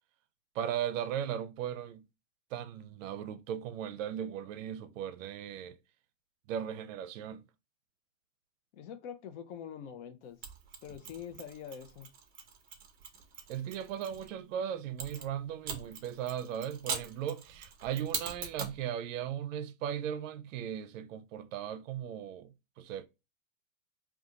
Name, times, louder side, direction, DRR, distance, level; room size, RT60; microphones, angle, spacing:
voice 1, 0.5-2.0 2.5-5.8 6.5-7.5 13.5-23.1, right 9 dB, 65° right, 0.5 m, -37 dB
voice 2, 8.7-10.4 10.8-12.1, left 8 dB, 55° left, 0.6 m, -44 dB
Mechanisms, 10.4-14.3 15.0-18.8, right 6 dB, 20° right, 0.6 m, -42 dB
2.5 x 2.3 x 2.9 m
hypercardioid pair, 125°, 41 cm